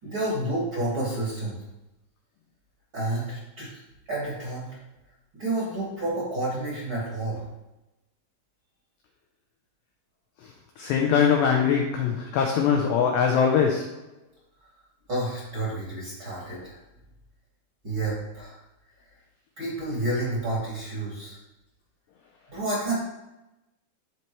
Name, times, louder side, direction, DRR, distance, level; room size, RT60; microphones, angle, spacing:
voice 1, 0.0-1.6 2.9-3.7 4.1-4.7 5.3-7.5 10.8-10.9 15.1-16.8 17.8-18.6 19.6-21.4 22.5-23.0, right 2 dB, 35° right, -6 dB, 2.2 m, -30 dB
voice 2, 10.8-13.9, left 7 dB, 85° left, 1 dB, 2.4 m, -22 dB
13.5 x 4.5 x 3.1 m, 0.95 s
omnidirectional pair, 5.9 m